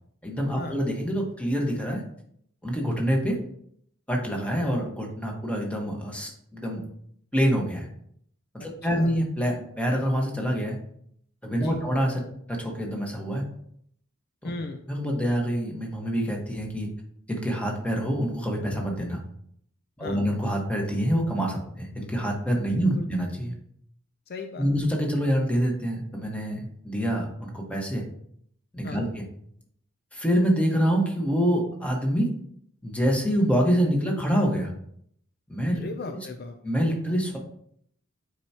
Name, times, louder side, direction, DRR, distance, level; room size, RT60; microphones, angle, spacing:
voice 1, 0.2-2.0 2.6-3.4 4.1-6.8 7.3-7.9 8.5-10.8 11.4-12.2 12.5-13.4 14.4-14.5 14.9-16.9 17.3-19.2 20.0-23.5 24.6-28.0 28.7-29.2 30.1-32.3 32.8-34.7 35.5-35.9 36.6-37.4, equal, 5° left, 0 dB, 1.4 m, -26 dB
voice 2, 14.4-14.8 20.0-20.2 22.8-23.1 24.3-24.7 28.8-29.1 35.7-36.6, left 3 dB, 50° left, 6 dB, 0.5 m, -37 dB
9.0 x 4.7 x 2.9 m, 0.68 s
head